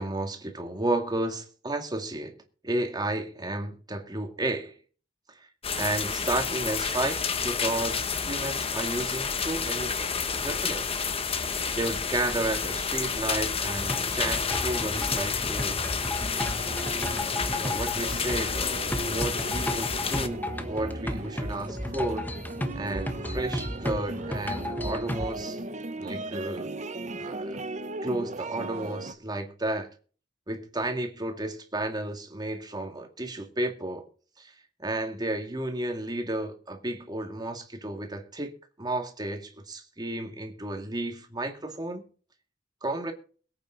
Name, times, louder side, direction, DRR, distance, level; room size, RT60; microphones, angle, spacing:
voice 1, 0.0-2.4 2.6-4.7 5.8-10.0 10.4-11.1 11.8-15.8 17.6-22.3 22.8-25.6 26.0-26.7 27.2-27.6 28.0-29.9 30.5-34.0 34.4-34.5 34.8-38.5 38.8-42.0 42.8-43.1, right 2 dB, 20° right, 2.2 m, -32 dB
sound 1, 5.6-20.3, left 6 dB, 30° left, 1.3 m, -30 dB
sound 2, 13.7-25.4, left 1 dB, 10° left, 1.3 m, -34 dB
sound 3, 16.2-29.1, right 2 dB, 40° right, 1.0 m, -37 dB
22.0 x 8.8 x 4.0 m
head